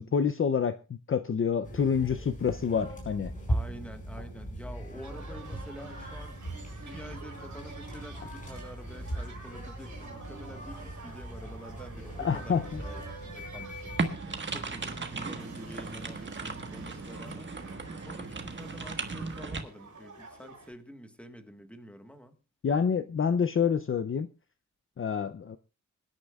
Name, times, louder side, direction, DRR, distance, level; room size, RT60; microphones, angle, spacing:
voice 1, 0.0-3.3 12.2-12.8 22.6-24.3 25.0-25.6, left 6 dB, 40° left, 0.5 m, -27 dB
sound 1, 1.6-14.1, right 1 dB, 25° left, 4.8 m, -39 dB
voice 2, 3.5-14.0 14.5-17.5 17.9-22.4, equal, 5° left, 1.4 m, -47 dB
sound 2, 5.0-20.7, right 4 dB, 65° right, 4.7 m, -50 dB
sound 3, 14.0-19.6, right 3 dB, 35° right, 1.4 m, -36 dB
26.5 x 9.9 x 2.3 m
wide cardioid pair, 160°, 31 cm